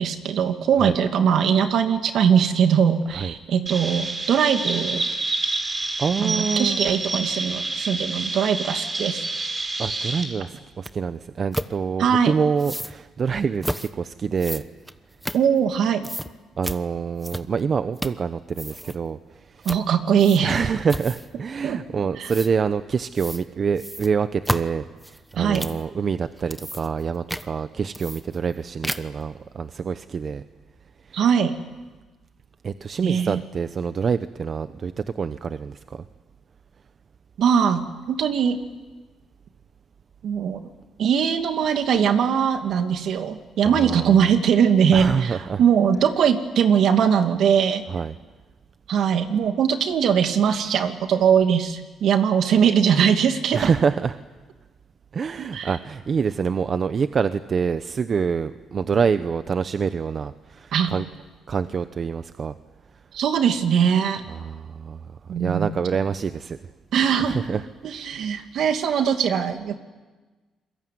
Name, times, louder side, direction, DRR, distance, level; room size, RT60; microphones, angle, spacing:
voice 1, 0.0-5.0 6.2-9.7 12.0-12.3 15.3-16.1 19.6-20.6 21.6-21.8 22.2-22.3 25.4-25.6 31.1-31.5 33.0-33.4 37.4-37.8 38.1-38.6 40.2-40.6 41.0-47.8 48.9-53.7 55.4-55.7 60.7-60.9 63.1-64.2 65.3-65.7 66.9-67.4 67.8-69.8, right 7 dB, 70° right, 6 dB, 2.5 m, -21 dB
Chirp tweet, 3.7-10.2, right 2 dB, 30° right, 5.4 m, -28 dB
voice 2, 6.0-6.8 9.8-14.6 16.6-19.7 20.4-30.4 31.1-31.2 32.6-36.0 43.6-44.2 44.9-45.6 47.9-48.2 53.5-54.2 55.1-61.1 61.5-62.5 64.3-66.6 67.2-67.7, right 6 dB, 45° right, 11 dB, 0.9 m, -26 dB
sound 1, 10.9-11.0 11.5-11.7 12.6-13.0 13.6-13.9 14.4-15.8 16.0-16.3 16.6-16.8 17.2-17.6 18.0-18.3 18.5-19.0 19.6-19.9 20.2-20.6 20.9-21.3 22.3-22.5 23.2-23.4 23.8-25.8 26.3-27.0 27.3-27.5 27.9-28.6 28.8-29.2, equal, ahead, 1.2 m, -32 dB
27.5 x 22.0 x 9.5 m, 1.3 s
cardioid pair, 90°, 0 cm